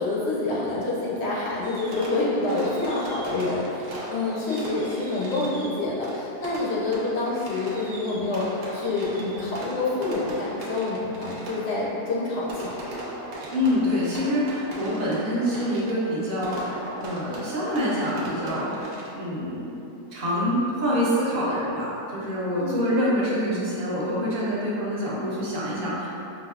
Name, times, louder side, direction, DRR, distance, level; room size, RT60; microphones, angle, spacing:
voice 1, 0.0-12.7 22.6-22.9, left 2 dB, 60° left, -5 dB, 0.7 m, -27 dB
Fireworks, 1.6-19.4, right 1 dB, 70° right, 1.1 m, -39 dB
voice 2, 13.5-19.7 19.9-26.1, equal, 45° right, -7 dB, 0.7 m, -26 dB
5.3 x 2.6 x 2.4 m, 2.8 s
omnidirectional pair, 1.7 m